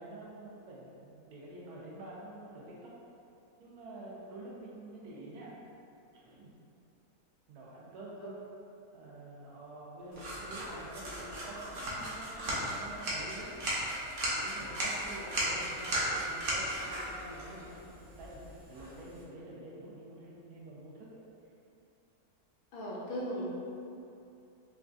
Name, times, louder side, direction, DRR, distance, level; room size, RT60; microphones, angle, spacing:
voice 1, 0.0-2.9 3.6-5.5 6.1-6.5 7.5-8.2 8.9-13.5 14.4-17.7 18.0-21.2, right 2 dB, 80° right, -5 dB, 1.2 m, -48 dB
sound 1, 10.0-17.9, equal, 60° left, 0.7 m, -53 dB
sound 2, 10.1-19.2, right 1 dB, 50° right, 0.6 m, -36 dB
voice 2, 22.7-23.5, equal, 75° left, -6 dB, 1.1 m, -37 dB
3.9 x 2.3 x 2.5 m, 2.6 s
omnidirectional pair, 1.6 m